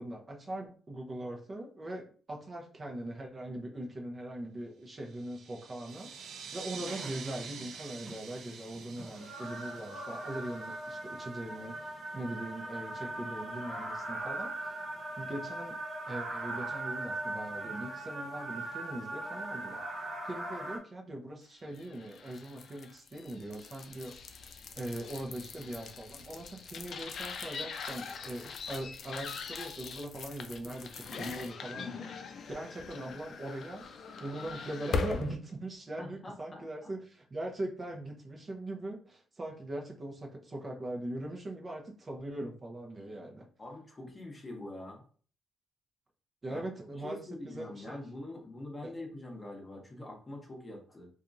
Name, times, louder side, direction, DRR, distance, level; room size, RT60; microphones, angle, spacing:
voice 1, 0.0-14.8 15.2-15.8 16.1-19.9 20.2-24.2 24.8-33.8 34.2-43.5 46.4-48.1 48.8-48.9, right 1 dB, 35° right, 0 dB, 0.6 m, -41 dB
sound 1, 5.0-11.3, right 6 dB, 75° right, 0.4 m, -47 dB
sound 2, 5.9-20.8, right 2 dB, 55° right, 1.1 m, -40 dB
sound 3, 21.7-35.3, left 4 dB, 60° left, 0.4 m, -41 dB
voice 2, 36.0-36.9 43.6-45.0 46.5-46.6 47.0-51.1, left 1 dB, 25° left, 1 dB, 0.8 m, -44 dB
2.8 x 2.4 x 2.5 m, 0.43 s
cardioid pair, 90°, 0 cm